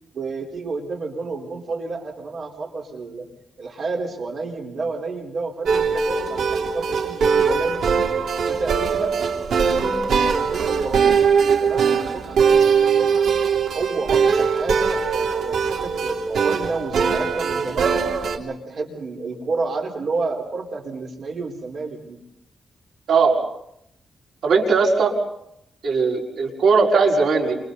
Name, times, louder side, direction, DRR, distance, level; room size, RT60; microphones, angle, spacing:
voice 1, 0.1-3.3 3.6-7.8 8.5-9.2 9.5-11.3 11.6-13.3 13.7-18.0 18.3-22.2, right 3 dB, 50° right, 0 dB, 4.4 m, -30 dB
sound 1, 5.7-18.4, right 6 dB, 85° right, 2.9 m, -21 dB
voice 2, 24.4-25.1 25.8-27.6, right 4 dB, 70° right, -2 dB, 5.5 m, -18 dB
28.5 x 28.5 x 4.2 m, 0.78 s
wide cardioid pair, 175°, 0 cm